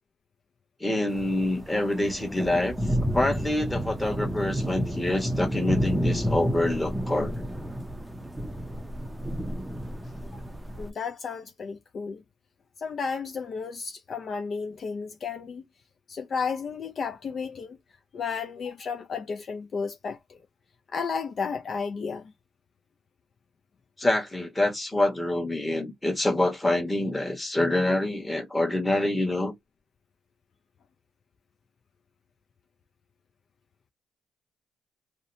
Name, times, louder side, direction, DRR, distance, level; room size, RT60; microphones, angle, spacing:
voice 1, 0.8-7.3 24.0-29.5, left 1 dB, 10° left, 1.1 m, -26 dB
sound 1, 1.1-10.9, equal, 5° right, 0.5 m, -31 dB
voice 2, 10.8-12.2 12.8-15.6 16.1-17.8 18.1-20.4 20.9-22.3, left 5 dB, 50° left, 0.4 m, -33 dB
2.7 x 2.1 x 2.5 m
cardioid pair, 90°, 0 cm